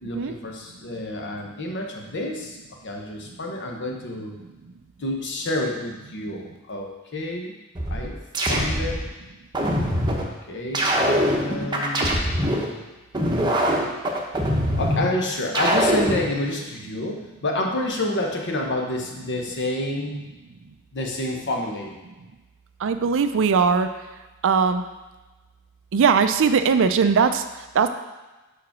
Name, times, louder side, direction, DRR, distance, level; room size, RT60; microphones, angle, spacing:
voice 1, 0.0-2.6 2.8-4.3 5.0-7.5 7.9-8.2 8.5-9.0 10.2-12.2 14.8-20.2 20.9-22.0, left 1 dB, 55° left, 1 dB, 1.1 m, -29 dB
sound 1, 7.7-9.1 9.5-10.3 10.7-12.7 13.1-15.1 15.5-16.3, equal, 20° right, 0.8 m, -23 dB
voice 2, 22.8-23.9 24.4-24.8 25.9-27.9, right 5 dB, 60° right, 9 dB, 0.4 m, -20 dB
5.1 x 4.8 x 5.9 m, 1.1 s
head